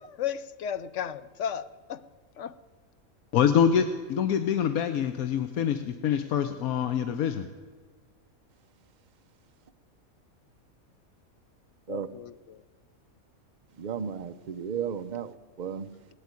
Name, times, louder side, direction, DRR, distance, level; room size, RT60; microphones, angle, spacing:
voice 1, 0.0-2.0 2.4-2.6 11.9-12.6, left 8 dB, 65° left, 14 dB, 0.9 m, -35 dB
voice 2, 3.3-7.5, left 8 dB, 80° left, 8 dB, 1.2 m, -25 dB
voice 3, 13.8-15.3 15.6-15.9, right 7 dB, 45° right, 9 dB, 0.6 m, -33 dB
18.0 x 8.2 x 9.6 m, 1.5 s
omnidirectional pair, 1.5 m